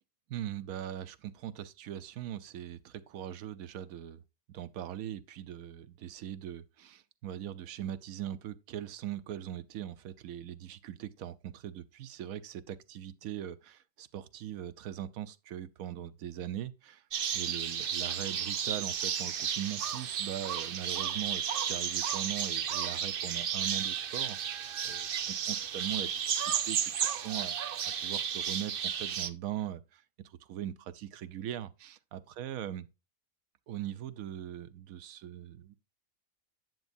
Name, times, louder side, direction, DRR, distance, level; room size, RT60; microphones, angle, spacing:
voice 1, 0.3-4.2 4.5-17.0 17.3-27.5 28.0-32.8 33.7-35.8, right 11 dB, 85° right, 1.1 m, -40 dB
sound 1, 17.1-29.3, right 8 dB, 55° right, 0.7 m, -33 dB
9.2 x 8.0 x 2.6 m
omnidirectional pair, 1.4 m